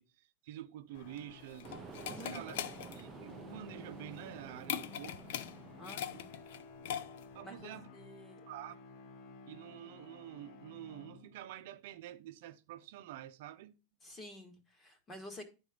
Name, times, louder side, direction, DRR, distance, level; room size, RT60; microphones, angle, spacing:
voice 1, 0.0-1.8 2.1-2.6 2.9-5.2 6.1-6.2 7.3-7.9 8.5-8.8 9.5-13.8, right 13 dB, 65° right, 0.7 m, -48 dB
sound 1, 0.9-11.7, left 4 dB, 45° left, 0.9 m, -54 dB
sound 2, 1.0-7.4, left 10 dB, 70° left, 0.7 m, -42 dB
sound 3, 1.6-6.6, right 7 dB, 20° right, 0.5 m, -51 dB
voice 2, 2.1-2.6 5.8-6.3 7.4-8.4 14.0-15.4, equal, 15° left, 1.7 m, -50 dB
11.0 x 4.3 x 5.1 m
supercardioid pair, 160°, 0 cm